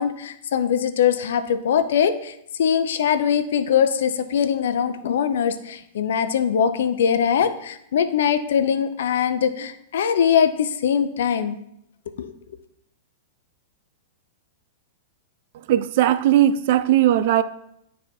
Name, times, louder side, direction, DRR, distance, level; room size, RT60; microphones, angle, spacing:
voice 1, 0.0-2.3 2.6-11.6 12.2-12.3, left 8 dB, 75° left, 0.6 m, -22 dB
voice 2, 15.7-17.4, right 12 dB, 60° right, 0.4 m, -18 dB
9.8 x 3.4 x 4.4 m
hypercardioid pair, 120°, 0 cm